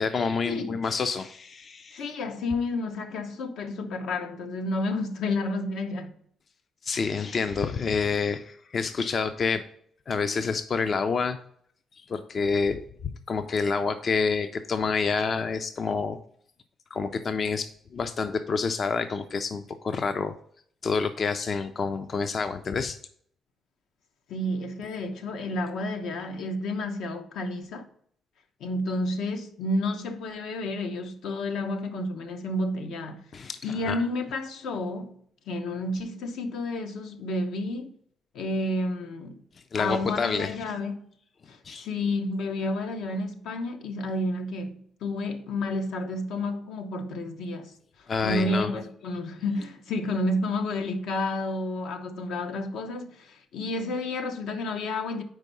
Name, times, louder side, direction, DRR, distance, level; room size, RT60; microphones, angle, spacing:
voice 1, 0.0-2.1 6.8-9.6 10.1-11.4 12.0-16.2 16.9-20.3 20.8-23.0 33.3-34.0 39.7-40.6 41.6-41.9 48.1-48.7, left 5 dB, 45° left, 0.4 m, -28 dB
voice 2, 1.9-6.1 24.3-27.9 28.6-33.2 33.6-35.2 35.5-37.9 38.3-39.4 39.8-41.1 41.5-47.7 48.2-55.2, left 2 dB, 80° left, 0.8 m, -30 dB
4.7 x 4.5 x 5.3 m
cardioid pair, 90°, 0 cm